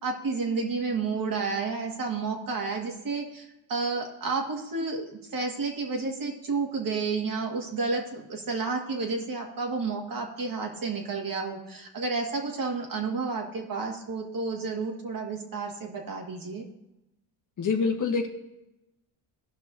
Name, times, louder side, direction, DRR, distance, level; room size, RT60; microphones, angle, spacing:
voice 1, 0.0-16.6, right 4 dB, 45° right, 1 dB, 2.0 m, -31 dB
voice 2, 17.6-18.3, left 5 dB, 40° left, 4 dB, 1.2 m, -25 dB
16.5 x 5.6 x 2.7 m, 0.94 s
supercardioid pair, 85°, 46 cm